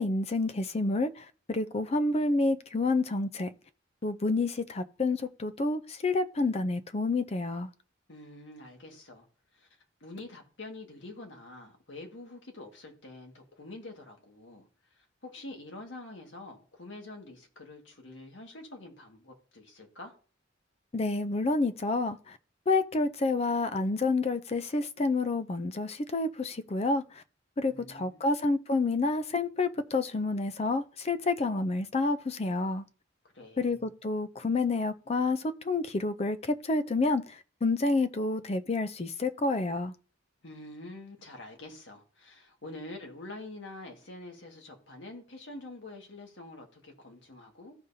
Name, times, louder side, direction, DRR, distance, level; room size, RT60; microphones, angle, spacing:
voice 1, 0.0-3.5 4.0-7.7 20.9-22.4 22.7-27.2 27.6-32.8 33.6-39.9, left 3 dB, 35° left, 0.5 m, -29 dB
voice 2, 8.1-9.3 9.5-9.7 10.0-20.1 27.7-28.3 33.3-33.9 40.4-47.7, left 2 dB, 70° left, 1.8 m, -46 dB
15.5 x 5.2 x 2.7 m
head